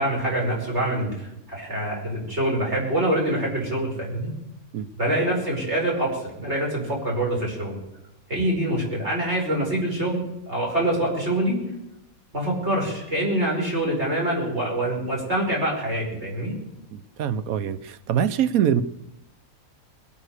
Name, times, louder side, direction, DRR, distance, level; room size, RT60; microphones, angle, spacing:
voice 1, 0.0-4.3 5.0-7.8 8.3-11.6 12.3-16.5, right 1 dB, 50° right, -2 dB, 5.5 m, -25 dB
voice 2, 16.9-18.8, right 9 dB, 80° right, 14 dB, 1.2 m, -24 dB
21.5 x 9.3 x 6.7 m, 0.88 s
omnidirectional pair, 1.5 m